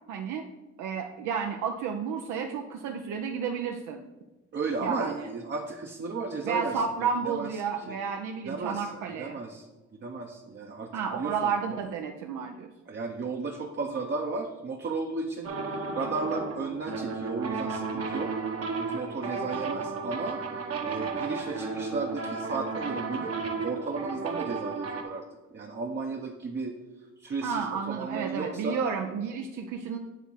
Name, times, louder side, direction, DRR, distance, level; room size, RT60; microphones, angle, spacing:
voice 1, 0.1-0.5 0.8-4.0 4.8-5.3 6.4-9.4 10.9-12.7 27.4-30.0, right 6 dB, 80° right, 3 dB, 0.6 m, -31 dB
voice 2, 4.5-6.8 7.3-7.5 7.9-8.0 8.5-8.9 9.2-9.7 10.0-11.4 12.9-15.5 15.9-18.3 18.7-20.4 20.8-23.3 23.6-25.2 25.5-26.8 27.2-28.8, right 4 dB, 35° right, 2 dB, 0.7 m, -34 dB
sound 1, 15.4-25.0, right 4 dB, 55° right, 1.1 m, -33 dB
8.4 x 3.6 x 5.6 m, 1.1 s
cardioid pair, 90°, 30 cm